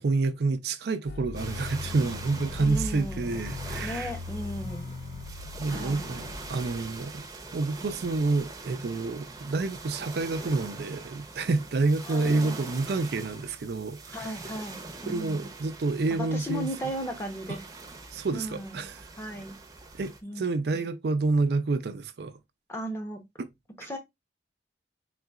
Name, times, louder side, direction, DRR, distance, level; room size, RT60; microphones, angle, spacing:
voice 1, 0.0-4.1 5.6-7.2 7.5-14.3 15.0-16.7 17.5-17.6 18.1-19.1 19.9-22.3 23.4-23.5 23.8-23.9, right 3 dB, 60° right, 0.4 m, -28 dB
sound 1, 1.1-7.3, left 3 dB, 80° left, 0.5 m, -39 dB
sound 2, 1.3-20.2, right 3 dB, 20° right, 0.6 m, -43 dB
voice 2, 2.6-3.4 3.8-4.9 5.7-6.1 12.0-12.6 14.1-15.5 16.1-17.7 18.3-18.8 19.2-19.6 20.2-20.4 22.7-23.2 23.8-24.0, equal, 15° left, 0.7 m, -36 dB
3.9 x 3.7 x 2.3 m
head